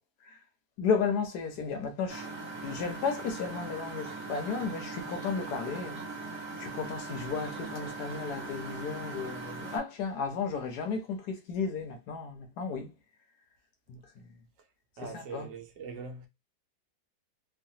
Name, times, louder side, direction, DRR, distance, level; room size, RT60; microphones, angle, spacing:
voice 1, 0.8-2.3 2.6-6.0 6.6-12.9 13.9-14.2 15.0-15.5, left 5 dB, 70° left, 1.0 m, -34 dB
Engine, 2.1-9.8, right 3 dB, 10° right, 0.6 m, -40 dB
voice 2, 15.0-16.3, right 4 dB, 80° right, 1.3 m, -42 dB
3.2 x 2.1 x 2.7 m
omnidirectional pair, 1.9 m